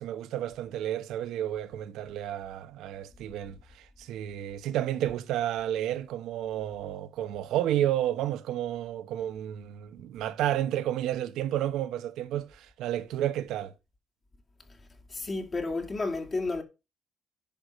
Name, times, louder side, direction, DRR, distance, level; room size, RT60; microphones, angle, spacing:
voice 1, 0.0-13.7, right 12 dB, 90° right, 1.1 m, -31 dB
voice 2, 15.1-16.6, left 3 dB, 35° left, 2.8 m, -31 dB
10.5 x 4.9 x 6.4 m
cardioid pair, 90°, 0 cm